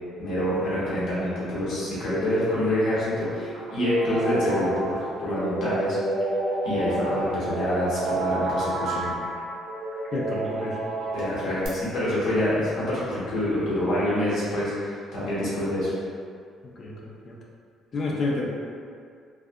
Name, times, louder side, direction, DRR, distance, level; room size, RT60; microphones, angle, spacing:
voice 1, 0.2-6.0 6.6-9.2 11.1-15.9, left 1 dB, 65° left, -9 dB, 1.1 m, -26 dB
sound 1, 3.2-11.7, right 2 dB, 65° right, 0.6 m, -30 dB
voice 2, 10.1-10.8 16.8-17.4 17.9-18.5, left 2 dB, 40° left, -2 dB, 0.4 m, -29 dB
2.5 x 2.4 x 2.3 m, 2.2 s
cardioid pair, 135°, 0 cm